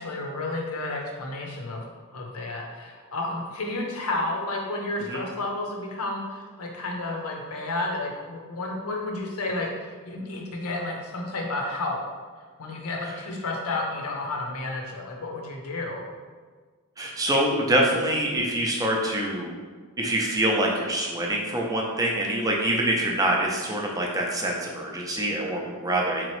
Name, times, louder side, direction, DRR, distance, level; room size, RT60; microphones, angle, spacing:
voice 1, 0.0-1.8 2.1-12.0 12.6-16.1, left 2 dB, 80° left, 0 dB, 0.7 m, -31 dB
voice 2, 17.0-19.6 20.0-26.3, right 1 dB, 15° right, -1 dB, 0.5 m, -25 dB
3.8 x 3.0 x 3.0 m, 1.5 s
head